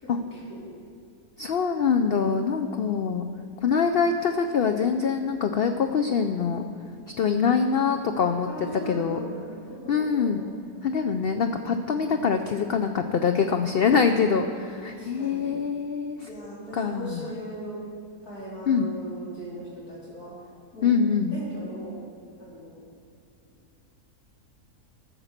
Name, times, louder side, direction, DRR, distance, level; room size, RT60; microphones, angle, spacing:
voice 1, 0.0-0.6 2.2-2.4 8.4-10.4 14.9-15.5 16.3-17.8 18.2-20.4 20.7-20.9 21.3-22.0 22.4-22.8, right 1 dB, 70° left, -8 dB, 4.7 m, -39 dB
voice 2, 1.4-3.3 3.6-6.6 7.2-9.2 9.9-10.4 10.8-16.2 16.7-17.2 18.7-18.9 20.8-21.3, left 6 dB, 85° left, 6 dB, 0.5 m, -24 dB
15.0 x 7.4 x 6.5 m, 2.4 s
omnidirectional pair, 1.6 m